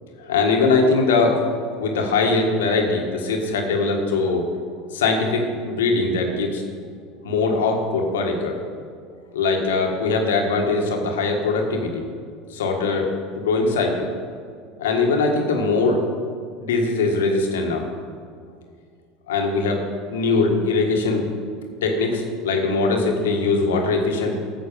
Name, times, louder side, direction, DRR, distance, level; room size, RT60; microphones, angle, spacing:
voice 1, 0.2-1.4 1.8-4.4 4.9-6.6 7.2-8.6 9.3-12.0 12.5-14.1 14.8-16.0 16.6-17.8 19.3-19.8 20.1-21.3 21.8-24.4, left 3 dB, 80° left, 2 dB, 1.6 m, -21 dB
9.4 x 6.4 x 6.9 m, 2.2 s
hypercardioid pair, 80°, 0 cm